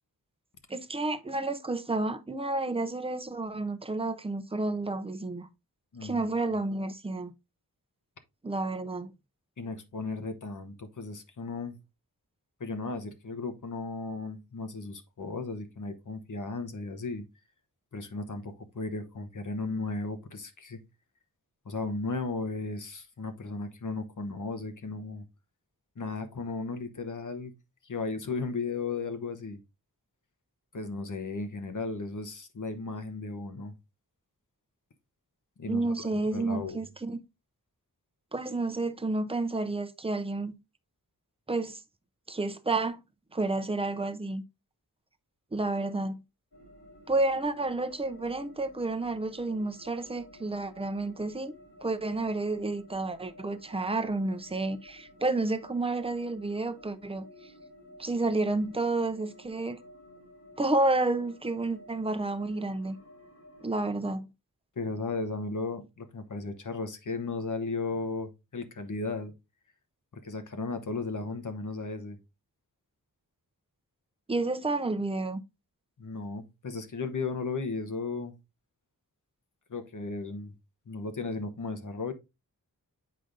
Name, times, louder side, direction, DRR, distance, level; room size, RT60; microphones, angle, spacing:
voice 1, 0.7-5.5 6.0-7.3 8.4-9.1 35.7-37.2 38.3-40.5 41.5-41.8 42.3-43.0 43.3-44.4 45.5-46.2 47.1-51.5 51.8-57.3 58.0-59.8 60.6-63.0 63.6-64.3 74.3-75.4, right 2 dB, 15° right, 0.6 m, -30 dB
voice 2, 5.9-6.3 9.6-11.8 12.6-17.2 17.9-20.8 21.6-25.2 26.0-27.5 27.8-29.6 30.7-33.7 35.6-36.8 64.8-69.3 70.1-72.2 76.0-78.3 79.7-80.5 80.9-82.1, left 3 dB, 55° left, 1.0 m, -35 dB
sound 1, 46.5-63.9, left 1 dB, 80° left, 2.7 m, -53 dB
7.8 x 5.0 x 2.5 m
wide cardioid pair, 110°, 36 cm